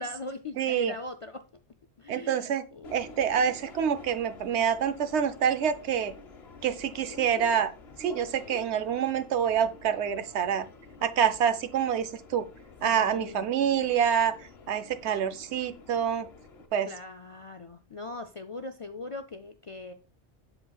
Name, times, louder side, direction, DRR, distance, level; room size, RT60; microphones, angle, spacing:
voice 1, 0.0-1.4 2.0-3.0 12.8-13.5 16.8-19.9, left 2 dB, 50° left, 0.4 m, -40 dB
voice 2, 0.6-0.9 2.1-2.6 2.9-6.1 6.6-7.7 8.0-10.7 11.0-12.5 12.8-14.4 14.7-16.3 16.7-16.9, right 8 dB, 80° right, 0.9 m, -27 dB
Subway metro underground, 2.8-16.7, left 3 dB, 65° left, 1.2 m, -49 dB
7.8 x 7.3 x 2.3 m
omnidirectional pair, 1.1 m